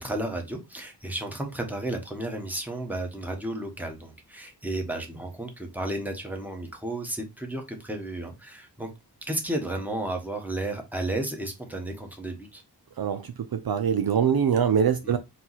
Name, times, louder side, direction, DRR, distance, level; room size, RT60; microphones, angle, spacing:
voice 1, 0.0-8.9 9.3-12.6 15.0-15.2, right 1 dB, 5° right, 1.1 m, -33 dB
voice 2, 13.0-15.2, right 7 dB, 60° right, 0.5 m, -24 dB
4.5 x 2.4 x 4.0 m
wide cardioid pair, 65°, 42 cm